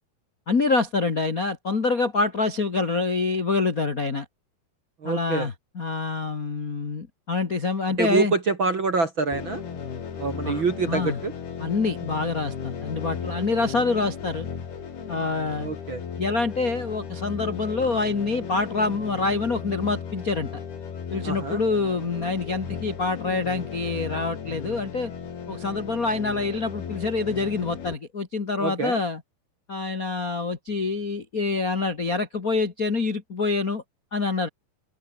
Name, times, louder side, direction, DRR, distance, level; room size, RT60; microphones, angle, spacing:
voice 1, 0.5-4.2 5.0-8.3 10.4-11.2 11.6-14.5 15.1-15.7 16.2-20.5 21.1-25.1 25.5-29.2 29.7-33.8 34.1-34.5, left 3 dB, 45° left, 1.1 m, -26 dB
voice 2, 5.0-5.5 8.0-9.6 10.2-11.3 15.6-16.0 21.2-21.6 28.6-29.0, right 4 dB, 40° right, 2.0 m, -26 dB
sound 1, 9.3-27.9, left 7 dB, 70° left, 5.8 m, -36 dB
open air
omnidirectional pair, 4.7 m